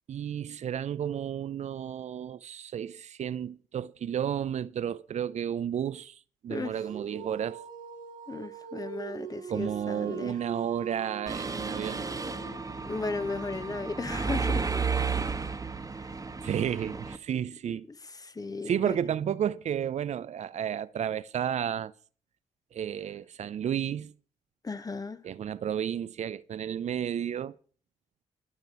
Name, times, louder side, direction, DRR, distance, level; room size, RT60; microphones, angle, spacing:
voice 1, 0.1-7.6 9.5-12.1 16.4-17.9 18.7-21.9 22.7-24.1 25.2-27.6, right 9 dB, 60° right, 0.6 m, -32 dB
Dog, 6.6-13.0, right 7 dB, 85° right, 1.2 m, -43 dB
voice 2, 8.3-10.4 12.9-14.7 16.0-16.1 18.1-19.0 24.6-25.2, left 3 dB, 30° left, 1.2 m, -35 dB
Mechanisms, 11.3-17.2, right 5 dB, 25° right, 1.4 m, -33 dB
14.0 x 6.6 x 8.2 m
supercardioid pair, 65°, 13 cm